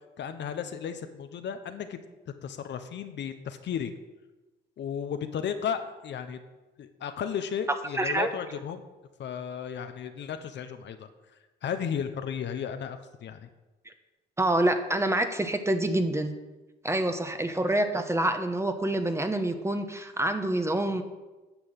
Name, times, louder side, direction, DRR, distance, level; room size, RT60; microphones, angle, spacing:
voice 1, 0.2-2.0 2.4-3.9 4.8-6.4 6.8-8.8 9.2-11.1 11.6-13.5, left 8 dB, 65° left, 9 dB, 1.0 m, -34 dB
voice 2, 7.9-8.3 14.4-16.3 16.8-21.0, right 1 dB, 15° right, 7 dB, 1.1 m, -27 dB
10.0 x 6.2 x 7.6 m, 1.1 s
cardioid pair, 90°, 20 cm